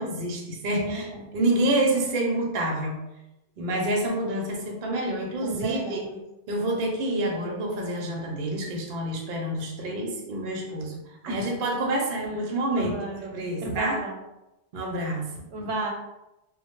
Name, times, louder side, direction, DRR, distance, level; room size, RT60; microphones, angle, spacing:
voice 1, 0.0-1.1 1.3-3.0 3.6-6.0 6.5-12.9 13.2-14.0 14.7-15.5, right 1 dB, 60° right, 0 dB, 0.6 m, -28 dB
voice 2, 0.7-1.4 5.4-6.2 11.3-11.4 12.7-14.2 15.5-15.9, right 2 dB, 90° right, 1 dB, 0.9 m, -33 dB
2.1 x 2.0 x 2.9 m, 0.94 s
omnidirectional pair, 1.2 m